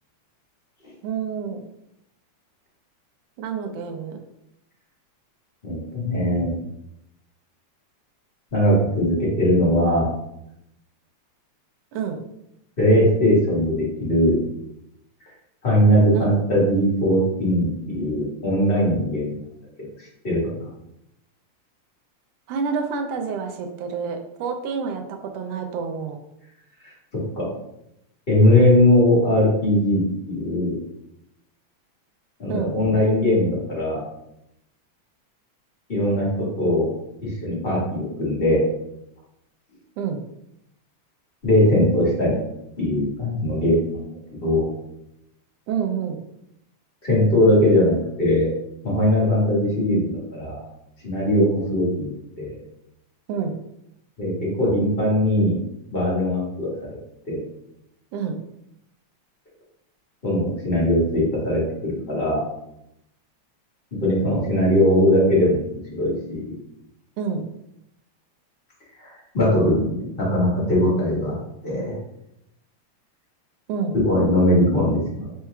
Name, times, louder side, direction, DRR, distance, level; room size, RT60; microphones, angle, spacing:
voice 1, 1.0-1.6 3.4-4.2 11.9-12.2 16.1-16.3 22.5-26.2 32.5-32.7 40.0-40.2 45.7-46.2 53.3-53.6 58.1-58.4 67.2-67.4 73.7-74.0, right 6 dB, 80° right, 5 dB, 1.5 m, -28 dB
voice 2, 5.6-6.5 8.5-10.1 12.8-14.4 15.6-19.4 19.8-19.9 20.2-20.7 27.3-27.5 28.3-30.8 32.4-34.0 35.9-36.9 37.2-38.7 41.4-42.4 42.8-44.7 47.0-48.5 48.8-50.6 51.0-52.1 52.4-52.6 54.2-54.3 54.6-55.5 55.9-56.7 57.3-57.4 60.2-62.4 64.0-66.5 69.0-71.3 71.6-72.0 74.0-75.3, left 1 dB, 25° left, -6 dB, 1.2 m, -20 dB
4.6 x 4.5 x 2.3 m, 0.81 s
omnidirectional pair, 3.4 m